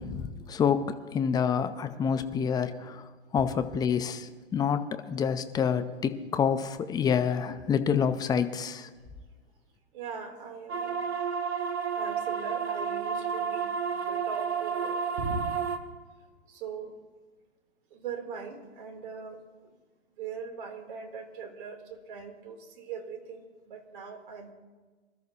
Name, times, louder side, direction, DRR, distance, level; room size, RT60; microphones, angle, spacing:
voice 1, 0.0-3.1 3.3-8.9, left 7 dB, 10° left, 0.7 m, -28 dB
voice 2, 9.9-11.0 12.0-15.5 16.5-17.0 17.9-19.7 20.2-21.8 22.1-24.5, right 5 dB, 50° right, 3.3 m, -40 dB
sound 1, 10.7-15.8, right 6 dB, 75° right, 1.6 m, -31 dB
25.5 x 13.0 x 2.9 m
hypercardioid pair, 125°, 33 cm